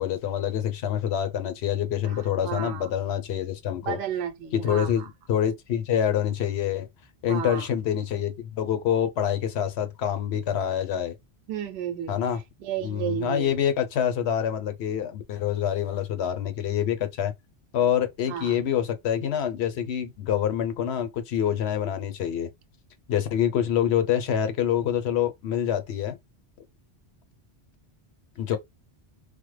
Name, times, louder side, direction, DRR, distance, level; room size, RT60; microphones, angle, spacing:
voice 1, 0.0-4.0 4.6-6.9 7.2-11.1 12.1-12.4 12.8-17.3 17.7-22.5 23.1-26.2 28.4-28.6, left 9 dB, 80° left, 0.9 m, -26 dB
voice 2, 2.0-2.9 3.8-5.1 7.3-7.7 11.5-12.2 12.6-13.6 18.2-18.6, right 9 dB, 75° right, 0.8 m, -33 dB
3.2 x 2.0 x 3.1 m
omnidirectional pair, 1.1 m